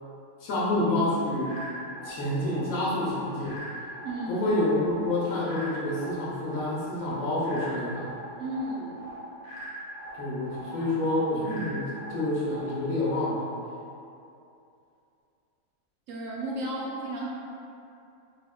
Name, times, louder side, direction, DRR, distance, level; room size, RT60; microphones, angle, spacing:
voice 1, 0.4-1.6 2.0-3.6 4.3-8.1 10.1-13.5, left 1 dB, 70° left, -6 dB, 1.1 m, -28 dB
sound 1, 1.4-13.4, equal, 20° right, 0.7 m, -42 dB
voice 2, 4.0-4.5 8.4-9.1 10.7-10.9 16.1-17.3, right 1 dB, 70° right, -4 dB, 0.9 m, -34 dB
3.5 x 3.4 x 2.3 m, 2.6 s
omnidirectional pair, 1.6 m